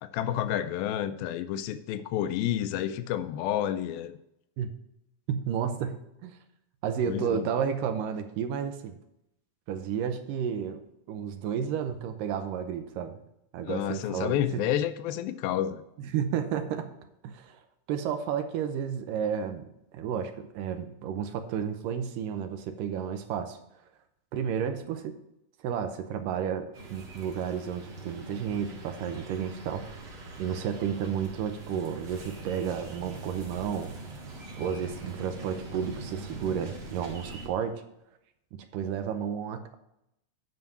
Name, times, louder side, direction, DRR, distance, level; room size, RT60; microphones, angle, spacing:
voice 1, 0.0-4.1 7.1-7.5 13.6-15.8, left 11 dB, 90° left, 11 dB, 2.4 m, -30 dB
voice 2, 5.3-6.4 6.8-9.0 9.7-10.8 11.1-13.1 13.5-14.6 16.0-16.9 17.2-17.6 17.9-23.6 24.3-25.1 25.6-30.1 30.4-33.9 34.6-37.8 38.5-39.8, right 8 dB, 75° right, 8 dB, 2.2 m, -32 dB
sound 1, 26.7-37.5, right 2 dB, 45° right, 2.3 m, -43 dB
9.4 x 5.5 x 5.5 m, 0.82 s
omnidirectional pair, 4.2 m